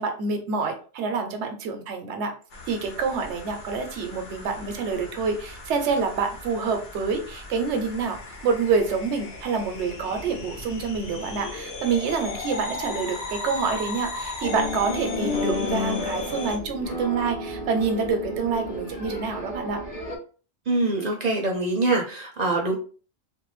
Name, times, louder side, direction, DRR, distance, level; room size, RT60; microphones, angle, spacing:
voice 1, 0.0-2.3 2.7-19.8, right 5 dB, 90° right, 5 dB, 0.9 m, -27 dB
sound 1, 2.5-16.6, left 3 dB, 65° left, 1.0 m, -37 dB
sound 2, 14.4-20.2, left 2 dB, 45° left, 0.6 m, -31 dB
voice 2, 20.7-22.8, right 2 dB, 50° right, 1 dB, 0.5 m, -24 dB
2.5 x 2.1 x 3.0 m, 0.39 s
omnidirectional pair, 1.1 m